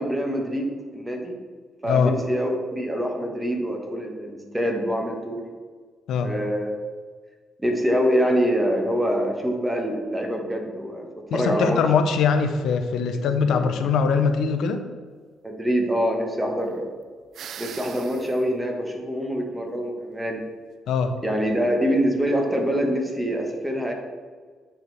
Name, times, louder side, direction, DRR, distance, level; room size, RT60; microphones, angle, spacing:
voice 1, 0.0-1.3 1.8-5.4 6.2-6.7 7.6-11.8 13.4-13.7 15.4-16.9 17.6-20.4 21.2-23.9, equal, 10° right, 1 dB, 1.3 m, -25 dB
voice 2, 11.3-14.8 20.9-21.2, left 6 dB, 75° left, 7 dB, 0.6 m, -22 dB
sound 1, 17.3-18.4, right 8 dB, 70° right, 0.3 m, -39 dB
8.9 x 4.5 x 3.4 m, 1.5 s
cardioid pair, 90°, 0 cm